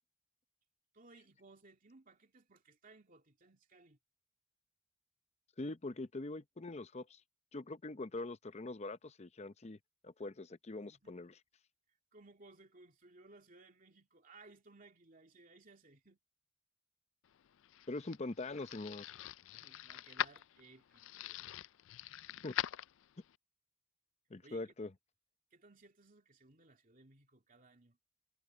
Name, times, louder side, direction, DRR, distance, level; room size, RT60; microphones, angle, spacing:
voice 1, 0.9-4.0 10.8-11.2 12.1-16.2 19.5-21.4 24.4-24.6 25.5-28.0, right 3 dB, 40° right, 2.6 m, -61 dB
voice 2, 5.6-7.2 7.5-9.8 10.0-11.4 17.9-19.1 22.4-22.5 24.3-24.9, left 2 dB, 35° left, 0.7 m, -43 dB
sound 1, 17.4-23.4, left 11 dB, 65° left, 0.4 m, -43 dB
head